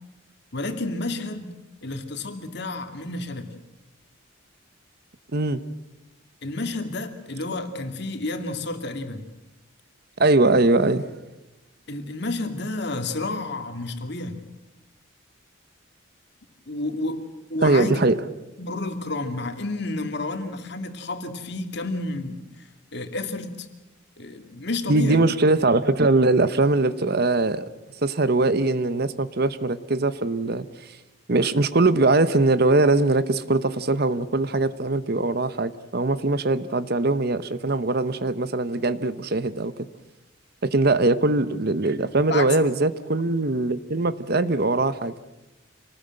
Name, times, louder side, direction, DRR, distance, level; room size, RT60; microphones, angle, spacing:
voice 1, 0.5-1.5 1.8-3.5 6.4-9.3 11.9-14.4 16.7-17.2 17.5-18.0 18.6-23.7 24.2-25.2 42.3-42.6, left 2 dB, 55° left, 6 dB, 2.5 m, -30 dB
voice 2, 10.2-11.1 17.6-18.2 24.9-27.6 28.0-30.7 31.3-39.7 40.6-45.1, right 2 dB, 50° right, 14 dB, 0.9 m, -21 dB
27.0 x 19.5 x 7.7 m, 0.99 s
head